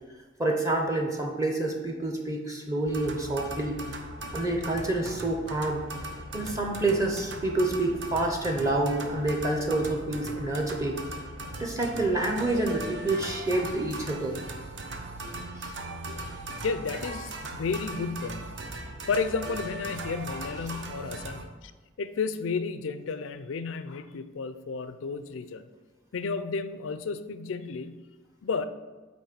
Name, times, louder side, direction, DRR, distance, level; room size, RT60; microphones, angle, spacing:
voice 1, 0.4-3.8 4.3-5.9 6.3-11.0 11.6-14.4 15.6-15.7, right 2 dB, 15° right, 1 dB, 0.6 m, -28 dB
sound 1, 2.9-21.4, right 1 dB, 65° right, 0.8 m, -39 dB
voice 2, 16.6-18.6 19.1-21.7 22.0-25.6 26.1-28.0 28.4-28.6, left 4 dB, 90° left, 12 dB, 0.4 m, -32 dB
8.6 x 3.1 x 5.9 m, 1.3 s
head